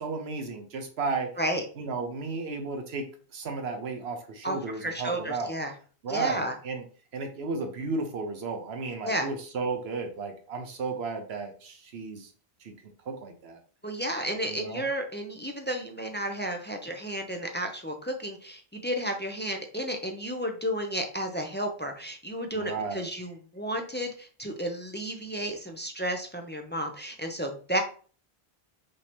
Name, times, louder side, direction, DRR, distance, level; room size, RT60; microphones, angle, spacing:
voice 1, 0.0-1.3 1.8-5.5 6.0-6.8 7.1-12.3 12.6-12.7 13.1-13.6 14.5-14.9 22.5-23.1, right 4 dB, 75° right, 5 dB, 1.0 m, -34 dB
voice 2, 4.4-5.7 6.1-6.6 9.0-9.3 13.8-27.8, right 1 dB, 15° left, 4 dB, 0.4 m, -32 dB
5.4 x 2.8 x 3.5 m, 0.41 s
omnidirectional pair, 1.1 m